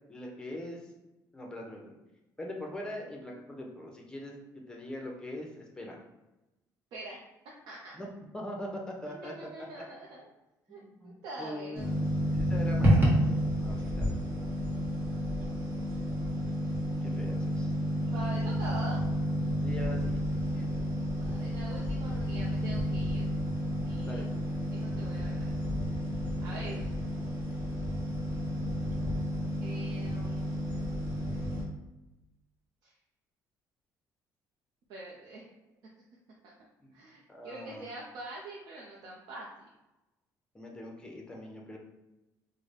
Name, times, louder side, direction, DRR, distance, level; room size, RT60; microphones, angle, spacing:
voice 1, 0.1-0.8 1.3-1.9 2.4-6.0 7.9-8.1 8.3-9.3 10.7-11.9 12.3-13.2 13.6-14.1 17.0-17.7 19.6-20.7 24.1-24.3 26.6-26.8 36.8-36.9 37.3-37.8 40.5-41.8, left 1 dB, 10° left, 0 dB, 0.7 m, -42 dB
voice 2, 9.1-10.3 10.7-12.1 15.4-15.6 18.1-19.0 21.2-23.3 23.9-24.3 24.7-25.7 26.4-26.9 29.6-30.9 32.8-32.9 34.9-35.4 36.9-39.5, right 2 dB, 80° right, -3 dB, 0.6 m, -44 dB
sound 1, 11.7-31.6, equal, 30° right, 1.2 m, -30 dB
3.8 x 2.1 x 3.3 m, 0.99 s
cardioid pair, 125°, 7 cm